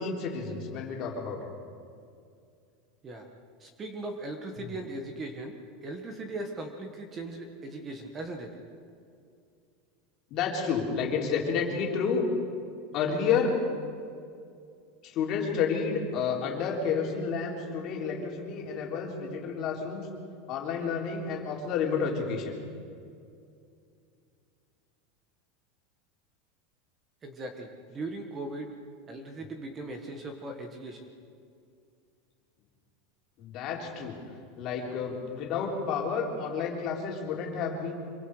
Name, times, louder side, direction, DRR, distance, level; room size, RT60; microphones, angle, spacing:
voice 1, 0.0-1.5 4.6-4.8 10.3-12.2 12.9-13.6 15.0-20.1 20.5-22.6 33.4-34.2 34.6-37.9, left 6 dB, 35° left, -1 dB, 3.8 m, -30 dB
voice 2, 3.6-8.6 27.2-28.7 29.1-31.1, right 2 dB, 20° right, 4 dB, 1.5 m, -39 dB
26.0 x 23.5 x 5.0 m, 2.4 s
supercardioid pair, 175°, 0 cm